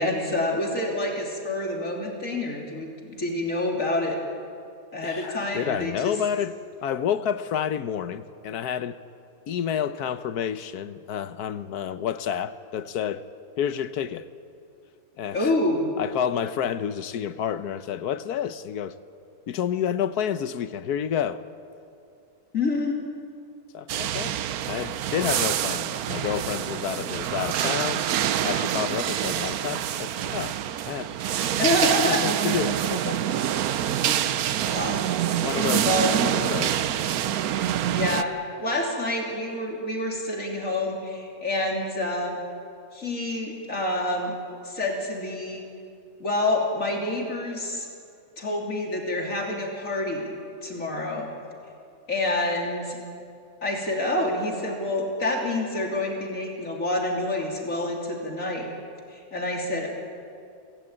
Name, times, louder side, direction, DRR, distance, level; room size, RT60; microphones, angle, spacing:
voice 1, 0.0-4.2 4.9-6.1 15.3-15.9 22.5-23.0 31.5-32.3 34.1-34.3 34.7-35.1 35.8-36.2 37.9-42.4 42.9-44.3 44.6-45.6 46.2-47.9 48.4-50.3 50.6-51.3 52.1-53.0 53.6-58.7 59.1-59.9, left 2 dB, 55° left, 3.4 m, -27 dB
voice 2, 5.0-6.6 6.8-9.0 9.5-13.3 13.6-14.3 15.2-15.5 16.0-19.0 19.5-21.4 23.7-24.4 24.7-28.1 28.4-30.6 30.9-31.1 32.0-33.2 35.4-35.9 36.3-36.9, left 8 dB, 80° left, 1.4 m, -29 dB
sound 1, 23.9-38.2, right 10 dB, 70° right, 1.2 m, -26 dB
26.0 x 16.5 x 8.9 m
omnidirectional pair, 1.6 m